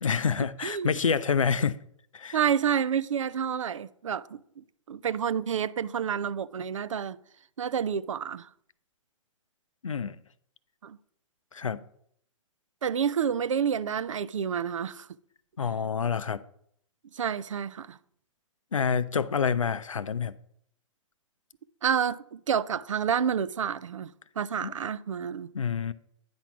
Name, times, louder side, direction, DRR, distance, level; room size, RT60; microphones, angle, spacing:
voice 1, 0.0-1.8 2.1-2.4 9.8-10.2 11.5-11.8 15.6-16.4 18.7-20.3 24.6-24.7 25.5-25.9, left 6 dB, 90° left, 0.5 m, -27 dB
voice 2, 2.3-4.4 4.9-7.2 7.6-8.5 10.8-11.0 12.8-15.1 17.1-18.0 21.8-25.5, right 8 dB, 75° right, 0.4 m, -29 dB
9.4 x 4.5 x 6.0 m
figure-of-eight pair, 115°, 16 cm